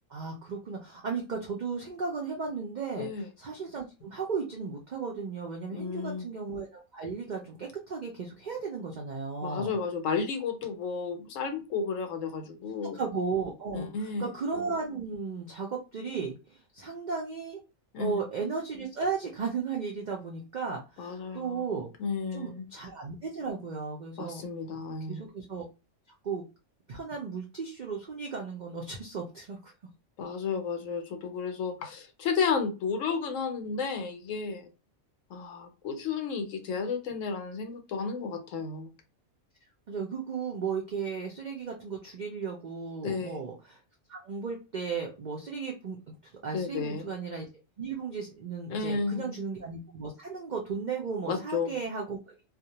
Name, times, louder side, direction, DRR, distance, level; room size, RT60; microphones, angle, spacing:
voice 1, 0.1-3.1 3.4-9.7 12.9-17.6 18.0-21.9 22.3-24.4 24.7-24.8 25.1-25.7 26.2-26.4 26.9-29.7 39.9-43.8 44.1-46.2 46.4-47.5 47.8-52.3, right 5 dB, 80° right, -1 dB, 0.4 m, -35 dB
voice 2, 5.7-6.3 9.4-13.0 13.7-14.3 17.9-18.2 21.0-21.6 22.0-22.7 24.2-25.3 30.2-34.7 35.3-38.9 43.0-43.4 46.5-47.1 48.7-49.3 51.3-51.7, left 5 dB, 70° left, 6 dB, 0.9 m, -32 dB
2.3 x 2.1 x 2.8 m, 0.29 s
omnidirectional pair, 1.5 m